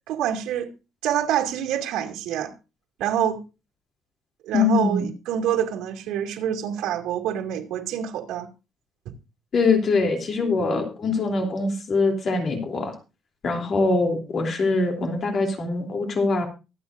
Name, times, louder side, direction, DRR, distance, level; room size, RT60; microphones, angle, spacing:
voice 1, 0.1-0.7 1.0-2.5 3.0-3.4 4.4-8.5, right 10 dB, 85° right, 2.5 m, -26 dB
voice 2, 4.5-5.1 9.5-12.9 13.4-16.5, left 3 dB, 35° left, 3.1 m, -23 dB
24.0 x 8.4 x 2.6 m
cardioid pair, 170°, 0 cm